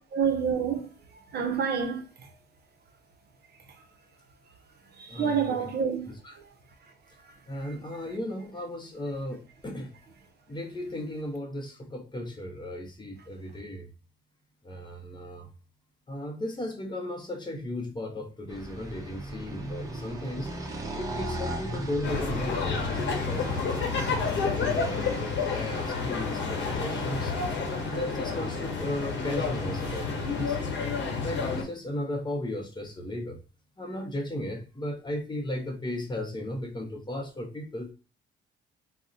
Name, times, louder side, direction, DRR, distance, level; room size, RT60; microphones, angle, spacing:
voice 1, 0.1-0.9 1.3-2.0 5.0-6.1 7.6-7.7, right 7 dB, 55° right, 0.6 m, -27 dB
voice 2, 5.1-5.7 6.1-6.4 7.5-9.9 10.5-13.9 14.6-15.5 16.1-20.5 20.9-23.9 24.4-27.3 27.8-30.7 31.2-33.4 33.8-37.9, left 1 dB, 20° left, 0.6 m, -35 dB
sound 1, 18.5-30.5, right 1 dB, 15° right, 0.6 m, -38 dB
sound 2, 22.0-31.6, left 5 dB, 65° left, 0.9 m, -30 dB
2.4 x 2.1 x 3.7 m
cardioid pair, 90°, 20 cm